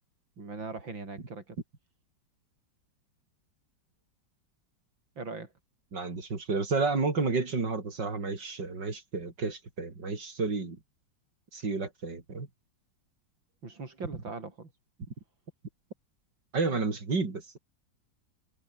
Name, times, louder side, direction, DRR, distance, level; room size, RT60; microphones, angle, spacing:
voice 1, 0.4-1.6 5.2-5.5 13.6-14.7, right 3 dB, 85° right, 5.3 m, -40 dB
voice 2, 5.9-10.8 11.5-12.5 16.5-17.6, right 4 dB, 65° right, 4.6 m, -31 dB
omnidirectional pair, 2.0 m